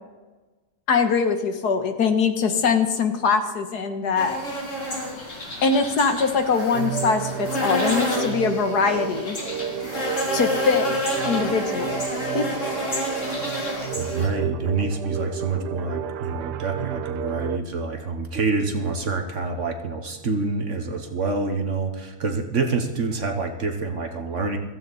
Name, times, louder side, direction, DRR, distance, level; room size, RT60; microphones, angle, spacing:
voice 1, 0.9-4.3 5.6-9.4 10.3-10.9 11.2-12.0 12.3-12.5, left 5 dB, 70° left, 7 dB, 1.8 m, -22 dB
sound 1, 4.2-14.3, left 1 dB, 45° left, 3.4 m, -29 dB
sound 2, 6.7-17.6, right 9 dB, 75° right, 1.1 m, -32 dB
sound 3, 7.6-13.9, left 1 dB, 85° left, 5.1 m, -39 dB
voice 2, 13.9-24.6, right 4 dB, 50° right, 5 dB, 1.5 m, -27 dB
15.5 x 15.0 x 4.2 m, 1.2 s
omnidirectional pair, 1.8 m